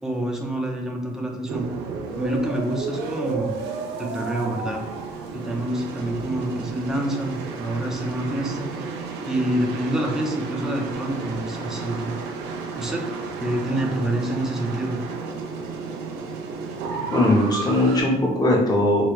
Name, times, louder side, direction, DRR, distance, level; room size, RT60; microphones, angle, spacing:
voice 1, 0.0-1.7 2.2-3.5 4.0-4.8 5.3-8.7 9.2-12.1 12.8-13.0 13.4-15.0, right 1 dB, 5° right, 0 dB, 0.6 m, -27 dB
sound 1, 1.5-18.0, right 4 dB, 85° right, 0.6 m, -32 dB
voice 2, 17.1-19.1, left 1 dB, 25° left, -2 dB, 0.9 m, -19 dB
4.8 x 2.2 x 3.1 m, 0.94 s
cardioid pair, 110°, 17 cm